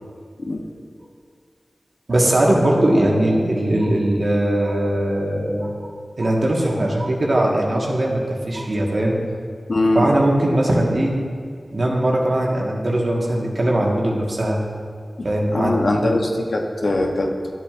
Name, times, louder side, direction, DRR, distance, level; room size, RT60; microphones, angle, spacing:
voice 1, 2.1-8.2 8.5-9.2 9.9-11.1 11.7-14.6 15.2-16.2, right 1 dB, 65° right, -2 dB, 1.4 m, -20 dB
voice 2, 9.7-10.1 15.5-17.3, left 2 dB, 75° left, 1 dB, 0.8 m, -21 dB
11.0 x 7.5 x 2.5 m, 2.1 s
cardioid pair, 40°, 0 cm